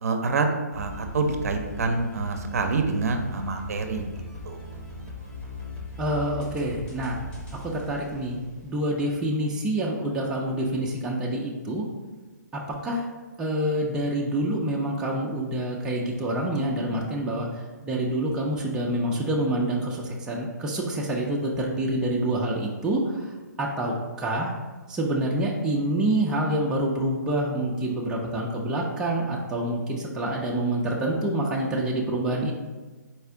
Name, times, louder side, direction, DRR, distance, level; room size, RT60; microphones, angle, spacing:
voice 1, 0.0-4.6, right 3 dB, 55° right, 5 dB, 0.5 m, -27 dB
sound 1, 0.7-9.2, left 1 dB, 10° left, 0.8 m, -40 dB
voice 2, 6.0-7.2 7.5-11.9 12.5-13.1 13.4-23.3 23.6-24.5 24.9-32.5, right 1 dB, 5° right, -3 dB, 0.4 m, -27 dB
4.3 x 2.4 x 4.6 m, 1.3 s
figure-of-eight pair, 140°, 10 cm